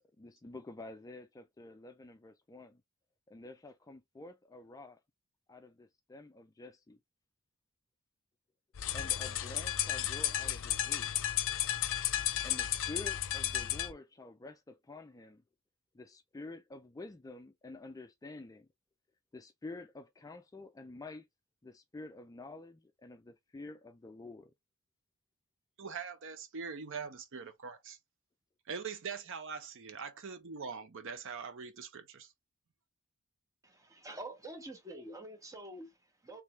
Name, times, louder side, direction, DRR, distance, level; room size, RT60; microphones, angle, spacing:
voice 1, 0.2-2.8 3.3-5.0 5.5-7.0 8.9-11.3 12.4-15.4 15.9-18.7 19.3-21.3 21.6-24.5, left 2 dB, 15° left, 0.3 m, -49 dB
sound 1, 8.8-13.9, left 11 dB, 60° left, 0.6 m, -33 dB
voice 2, 25.8-28.0 28.7-32.3, right 5 dB, 60° right, 0.7 m, -42 dB
voice 3, 33.6-36.4, right 1 dB, 15° right, 1.0 m, -47 dB
3.4 x 3.2 x 3.1 m
head